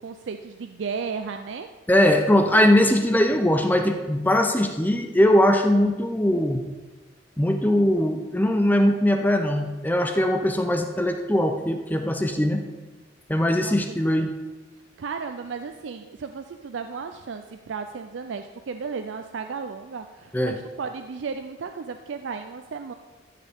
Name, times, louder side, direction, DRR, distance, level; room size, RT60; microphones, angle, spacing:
voice 1, 0.0-1.7 13.5-14.3 15.0-22.9, right 5 dB, 70° right, 7 dB, 0.4 m, -34 dB
voice 2, 1.9-6.6 7.4-12.6 13.3-14.3 20.3-20.6, left 1 dB, 10° left, 5 dB, 0.5 m, -21 dB
13.5 x 6.7 x 3.6 m, 1.2 s
head